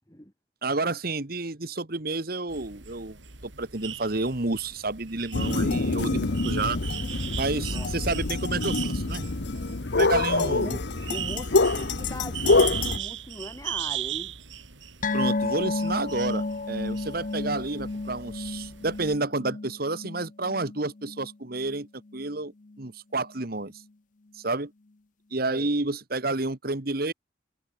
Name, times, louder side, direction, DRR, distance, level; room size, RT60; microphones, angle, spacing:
voice 1, 0.6-3.2 3.4-6.8 7.4-9.3 10.0-10.8 15.1-21.9 22.1-22.5 22.8-23.7 24.3-24.7 25.3-27.1, right 3 dB, 50° right, 1.5 m, -30 dB
sound 1, 2.5-19.2, right 10 dB, 75° right, 4.4 m, -39 dB
sound 2, 5.3-13.0, left 3 dB, 60° left, 1.0 m, -25 dB
voice 2, 7.0-7.9 10.1-14.3 25.5-25.8, left 1 dB, 15° left, 5.5 m, -40 dB
sound 3, 15.0-21.8 22.1-22.3 22.7-22.8, left 3 dB, 40° left, 0.7 m, -32 dB
head